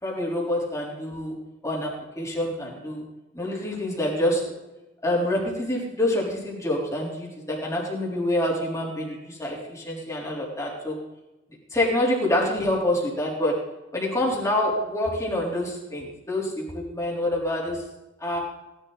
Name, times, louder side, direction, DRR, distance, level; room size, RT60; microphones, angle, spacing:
voice 1, 0.0-1.4 1.6-1.9 2.2-3.0 3.3-4.4 5.0-10.9 11.7-13.6 13.9-17.8 18.2-18.4, left 1 dB, 15° left, -3 dB, 3.7 m, -26 dB
17.0 x 11.0 x 4.1 m, 1.0 s
head